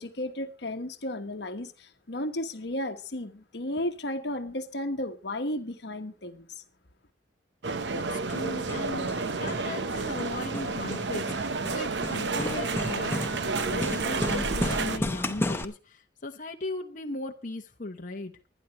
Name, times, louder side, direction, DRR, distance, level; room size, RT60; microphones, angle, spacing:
voice 1, 0.0-6.6, left 1 dB, 65° left, 1.3 m, -34 dB
sound 1, 7.6-15.0, right 4 dB, 75° right, 0.9 m, -30 dB
voice 2, 7.9-13.2 13.7-18.3, left 2 dB, 45° left, 1.0 m, -37 dB
Hammer, 8.1-15.6, left 1 dB, 15° left, 0.8 m, -34 dB
24.5 x 10.0 x 3.0 m
head